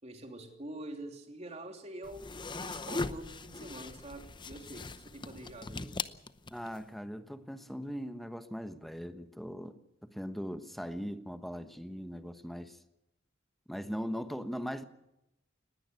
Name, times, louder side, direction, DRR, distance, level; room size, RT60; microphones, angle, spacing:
voice 1, 0.0-5.9, right 1 dB, 35° right, 4 dB, 3.1 m, -46 dB
sound 1, 2.0-6.8, left 3 dB, 25° left, 0.8 m, -40 dB
voice 2, 6.5-9.8 10.0-12.8 13.7-14.8, equal, ahead, 9 dB, 1.1 m, -40 dB
20.5 x 17.0 x 8.0 m, 0.86 s
head